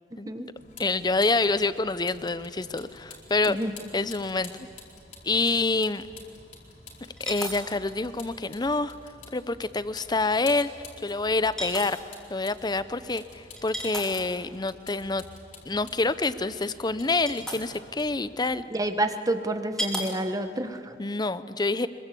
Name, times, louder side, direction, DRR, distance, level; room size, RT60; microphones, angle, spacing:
Vehicle, 0.6-18.5, left 3 dB, 50° left, 4.5 m, -49 dB
voice 1, 0.8-3.6 3.9-4.5 5.2-6.0 7.2-8.9 9.3-10.7 11.0-12.0 12.3-15.2 15.7-18.6 21.0-21.9, left 3 dB, 25° left, 14 dB, 0.7 m, -27 dB
sound 1, 4.2-4.3 7.2-7.6 8.1-8.2 9.9-10.1 11.6-12.0 13.6-14.3 16.6-16.7 17.0-17.6 18.7-18.8 19.8-20.1 20.5-20.8, equal, 5° left, 4.2 m, -33 dB
voice 2, 18.7-20.9, right 1 dB, 20° right, 8 dB, 1.3 m, -29 dB
25.5 x 23.0 x 8.5 m, 2.2 s
head